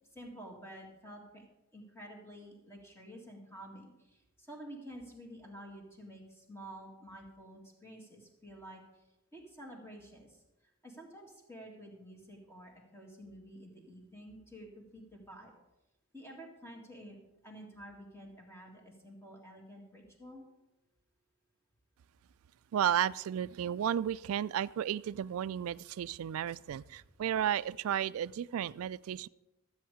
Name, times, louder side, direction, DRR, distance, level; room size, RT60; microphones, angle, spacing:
voice 1, 0.1-1.5 1.7-8.8 9.3-10.4 10.8-15.5 16.1-17.2 17.4-20.4 27.0-27.1, right 1 dB, 10° left, 0 dB, 1.9 m, -50 dB
voice 2, 22.7-29.3, right 9 dB, 70° right, 19 dB, 0.3 m, -33 dB
13.0 x 7.9 x 4.9 m, 0.99 s
head